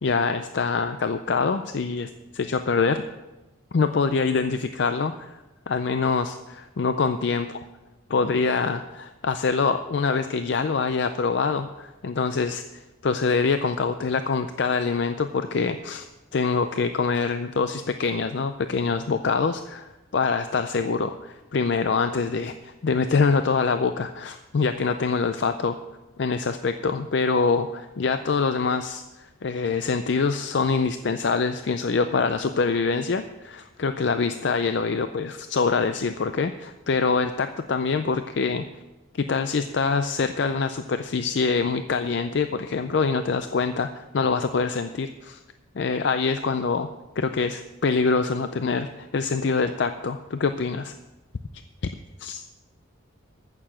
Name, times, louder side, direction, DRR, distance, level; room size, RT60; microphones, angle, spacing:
voice 1, 0.0-3.0 3.7-5.4 5.7-7.5 8.1-25.8 26.2-38.7 39.1-45.4 45.8-46.9 47.2-50.9 52.2-52.4, left 4 dB, 55° left, 9 dB, 0.4 m, -25 dB
14.5 x 6.8 x 6.3 m, 1.1 s
head